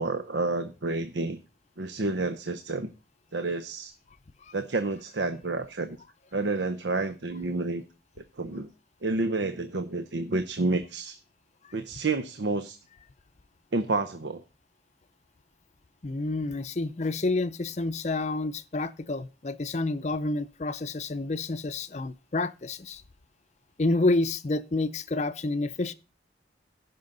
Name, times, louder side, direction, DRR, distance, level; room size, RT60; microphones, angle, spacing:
voice 1, 0.0-1.4 1.8-2.9 3.3-3.9 4.5-6.0 6.3-7.8 8.4-8.7 9.0-11.2 11.7-12.8 13.7-14.4, right 3 dB, 85° right, 0.7 m, -29 dB
voice 2, 16.0-23.0 23.8-25.9, left 2 dB, 40° left, 0.5 m, -29 dB
16.0 x 5.6 x 3.9 m
head